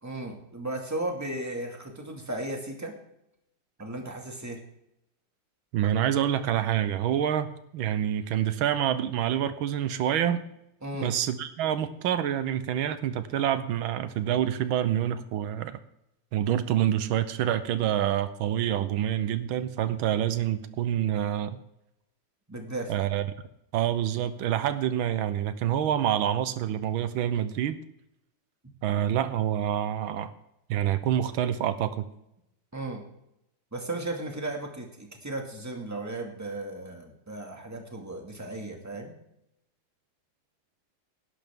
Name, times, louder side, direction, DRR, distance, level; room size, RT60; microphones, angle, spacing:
voice 1, 0.0-3.0 3.8-4.6 10.8-11.1 22.5-22.9 32.7-33.0 33.7-39.1, right 2 dB, 10° right, 2 dB, 2.0 m, -35 dB
voice 2, 5.7-10.4 11.0-15.8 16.3-21.6 22.9-23.2 23.7-27.8 28.8-30.3 30.7-32.1, right 10 dB, 85° right, 12 dB, 1.6 m, -27 dB
17.5 x 11.5 x 3.7 m, 0.81 s
omnidirectional pair, 2.2 m